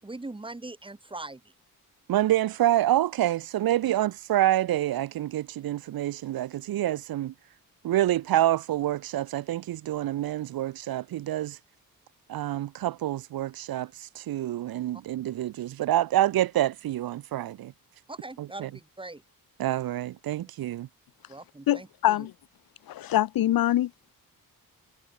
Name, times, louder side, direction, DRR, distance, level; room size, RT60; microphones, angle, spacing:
voice 1, 0.0-1.4 18.1-19.2 21.3-22.3, right 2 dB, 15° right, 7.1 m, -41 dB
voice 2, 2.1-7.3 7.8-11.6 12.3-17.7 18.4-18.7 19.6-20.9, right 13 dB, 85° right, 0.9 m, -27 dB
voice 3, 21.7-22.3 22.9-23.9, left 13 dB, 80° left, 0.8 m, -24 dB
wide cardioid pair, 160°, 35 cm